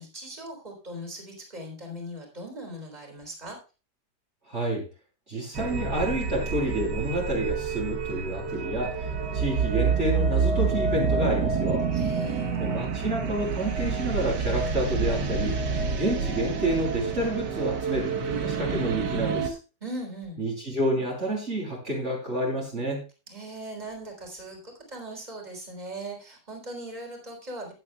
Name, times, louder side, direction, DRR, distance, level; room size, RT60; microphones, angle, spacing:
voice 1, 0.0-3.6 11.9-12.6 19.8-20.4 23.3-27.7, right 1 dB, 25° right, 1 dB, 3.9 m, -39 dB
voice 2, 4.5-4.8 5.3-11.9 12.6-15.6 16.0-19.6 20.4-23.0, right 1 dB, 40° right, -3 dB, 3.6 m, -29 dB
sound 1, 5.5-19.5, right 5 dB, 75° right, 2.0 m, -28 dB
16.0 x 9.7 x 2.3 m, 0.32 s
omnidirectional pair, 1.9 m